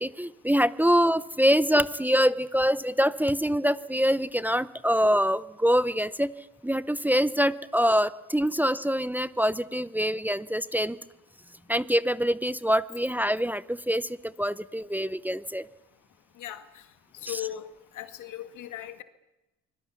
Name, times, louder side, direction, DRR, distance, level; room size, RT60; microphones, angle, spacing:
voice 1, 0.0-6.3 6.6-11.0 11.7-15.7 17.2-17.4, equal, 5° right, 15 dB, 0.7 m, -25 dB
voice 2, 16.4-16.8 17.2-17.7 17.9-19.0, left 12 dB, 80° left, 9 dB, 2.0 m, -37 dB
25.5 x 21.0 x 7.1 m, 1.0 s
cardioid pair, 90°, 30 cm